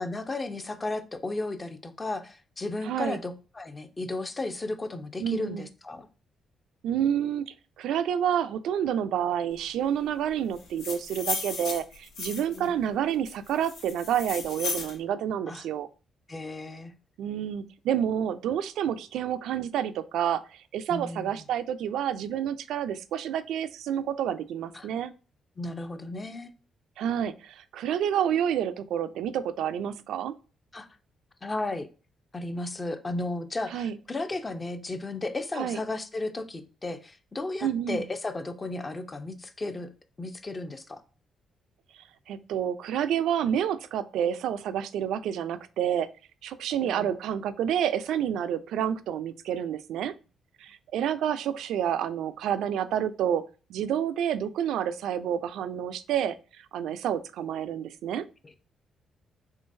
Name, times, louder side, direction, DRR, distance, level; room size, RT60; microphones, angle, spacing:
voice 1, 0.0-6.1 12.3-12.7 15.5-15.6 16.3-16.9 20.9-21.5 24.7-24.9 25.6-26.5 30.7-30.9 31.4-31.9 32.3-39.9 40.2-41.0 46.8-47.2 58.4-58.6, left 2 dB, 25° left, 0.5 m, -34 dB
voice 2, 2.8-3.2 5.2-5.7 6.8-15.9 17.2-25.1 27.0-30.3 33.7-34.0 35.6-35.8 37.6-38.1 42.3-46.1 46.4-50.1 50.6-53.4 53.7-58.2, right 9 dB, 85° right, 0.3 m, -29 dB
sound 1, 10.6-12.6 13.2-14.9, left 4 dB, 85° left, 1.0 m, -35 dB
3.7 x 3.3 x 2.6 m
cardioid pair, 105°, 0 cm